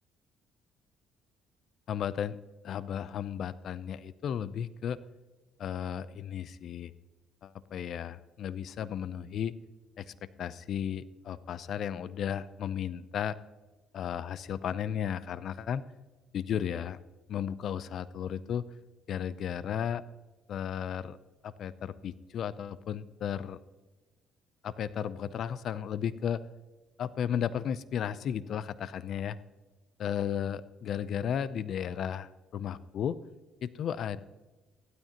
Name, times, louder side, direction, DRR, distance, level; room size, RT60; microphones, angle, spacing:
voice 1, 1.9-2.4 2.6-5.0 5.6-6.9 7.4-9.5 10.0-13.4 13.9-15.8 16.3-17.0 17.3-18.7 19.1-20.0 20.5-21.2 21.4-23.6 24.6-26.4 27.0-29.4 30.0-33.2 33.6-34.2, left 9 dB, 60° left, 17 dB, 0.5 m, -34 dB
15.5 x 12.5 x 2.9 m, 1.2 s
supercardioid pair, 80°, 0 cm